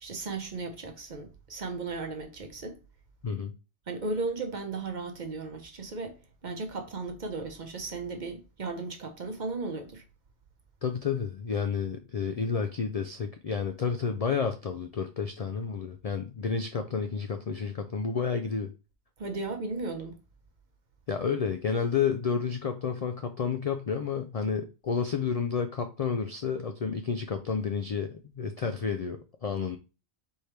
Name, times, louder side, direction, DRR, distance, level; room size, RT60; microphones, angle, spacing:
voice 1, 0.0-2.8 3.9-10.0 19.2-20.2, right 3 dB, 45° right, 0.8 m, -36 dB
voice 2, 10.8-18.7 21.1-29.8, left 6 dB, 60° left, 0.4 m, -30 dB
4.4 x 3.5 x 3.2 m
omnidirectional pair, 1.2 m